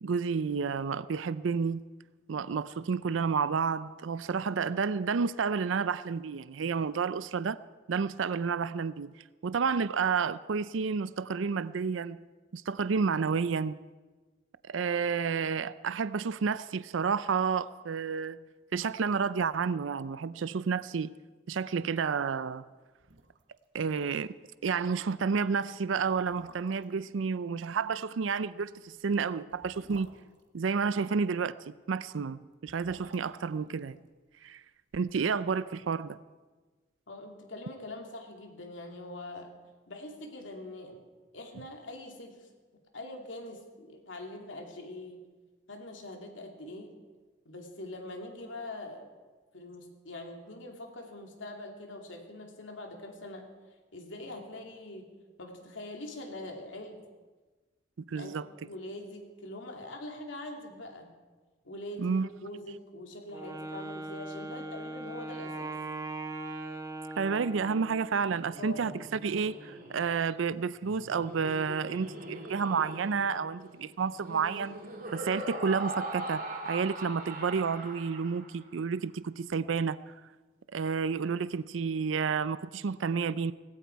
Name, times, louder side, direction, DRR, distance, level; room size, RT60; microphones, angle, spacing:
voice 1, 0.0-1.8 2.3-7.6 7.9-9.2 9.4-12.2 12.5-13.8 14.6-18.4 18.7-21.1 21.5-22.7 23.7-24.3 24.6-30.2 30.5-34.0 34.4-34.6 34.9-36.2 58.1-58.4 62.0-62.3 67.2-74.8 75.1-80.2 80.7-83.5, right 5 dB, 85° right, 0.5 m, -30 dB
sound 1, 23.0-23.7 23.9-24.0 24.4-24.6 25.3-25.4 26.0-27.0 28.5-31.2 32.4-34.7 34.9-35.0, right 2 dB, 65° right, 1.4 m, -55 dB
voice 2, 37.1-39.5 39.9-41.0 41.3-42.5 42.9-45.2 45.7-46.9 47.4-49.1 49.5-53.4 53.9-55.1 55.4-57.0 58.1-58.3 58.7-61.1 61.6-62.1 62.4-65.7 68.6-68.9, left 1 dB, 80° left, 2.7 m, -43 dB
Wind instrument woodwind instrument, 63.3-68.2, right 2 dB, 15° right, 1.2 m, -40 dB
Laughter, 68.2-78.7, right 1 dB, 45° right, 2.7 m, -42 dB
19.0 x 16.5 x 4.6 m
head